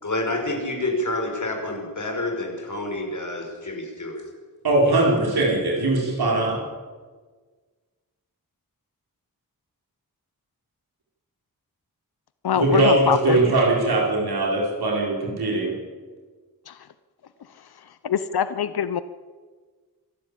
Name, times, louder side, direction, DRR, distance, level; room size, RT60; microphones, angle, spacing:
voice 1, 0.0-4.2, left 1 dB, 50° left, 2 dB, 5.9 m, -28 dB
voice 2, 4.6-6.6 12.5-15.7, right 2 dB, 85° right, -2 dB, 5.2 m, -21 dB
voice 3, 12.4-13.4 16.7-16.8 18.0-19.0, left 8 dB, 85° left, 13 dB, 0.8 m, -23 dB
26.0 x 12.0 x 8.6 m, 1.4 s
wide cardioid pair, 70°, 37 cm